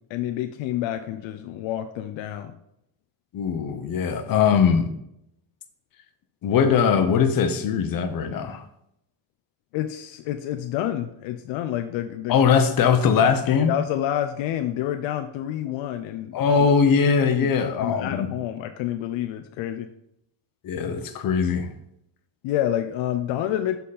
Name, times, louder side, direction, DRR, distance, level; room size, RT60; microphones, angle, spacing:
voice 1, 0.1-2.5 9.7-12.4 13.7-16.7 17.4-19.9 22.4-23.8, left 12 dB, 75° left, 0.6 m, -28 dB
voice 2, 3.3-4.9 6.4-8.6 12.3-13.7 16.3-18.3 20.6-21.7, left 6 dB, 45° left, 0.9 m, -21 dB
7.5 x 4.1 x 4.1 m
cardioid pair, 125°, 46 cm